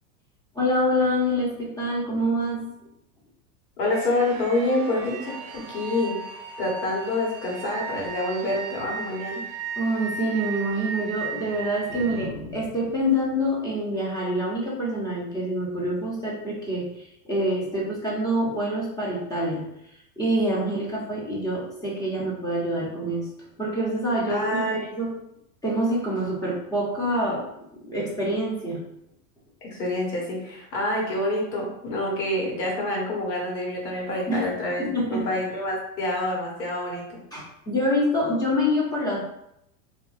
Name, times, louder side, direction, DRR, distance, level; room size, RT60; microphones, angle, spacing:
voice 1, 0.5-2.7 9.8-19.6 20.2-23.3 23.6-25.1 25.6-27.4 27.8-28.8 34.3-34.5 34.8-35.3 37.3-39.3, equal, 10° left, -6 dB, 0.9 m, -26 dB
voice 2, 3.8-5.4 5.7-6.2 6.6-9.4 24.3-24.8 29.6-37.2, left 1 dB, 90° left, -3 dB, 1.4 m, -27 dB
sound 1, 3.9-12.3, right 5 dB, 55° right, 0.6 m, -36 dB
3.3 x 2.5 x 2.6 m, 0.78 s
supercardioid pair, 120°, 49 cm